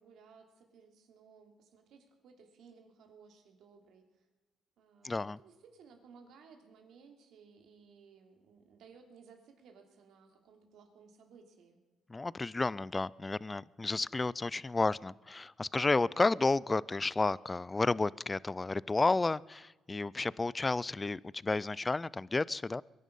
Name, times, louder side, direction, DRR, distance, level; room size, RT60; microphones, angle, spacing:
voice 1, 0.0-4.3 4.8-11.8, right 5 dB, 80° right, 4 dB, 3.0 m, -59 dB
voice 2, 5.0-5.4 12.1-22.8, left 3 dB, 20° left, 23 dB, 0.4 m, -31 dB
23.0 x 11.0 x 5.4 m, 1.2 s
cardioid pair, 90°, 0 cm